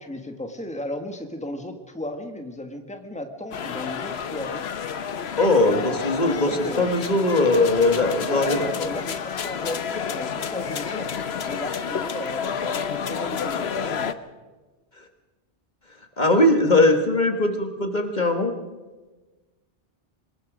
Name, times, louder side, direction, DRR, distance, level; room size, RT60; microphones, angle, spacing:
voice 1, 0.0-4.7 5.7-6.0 6.4-6.9 8.2-11.1 11.5-14.1, left 1 dB, 5° left, 5 dB, 1.7 m, -34 dB
sound 1, 3.5-14.1, left 7 dB, 70° left, 1.1 m, -30 dB
voice 2, 5.4-8.6 16.2-18.5, left 2 dB, 45° left, 5 dB, 1.7 m, -20 dB
25.0 x 20.5 x 5.1 m, 1.2 s
omnidirectional pair, 1.1 m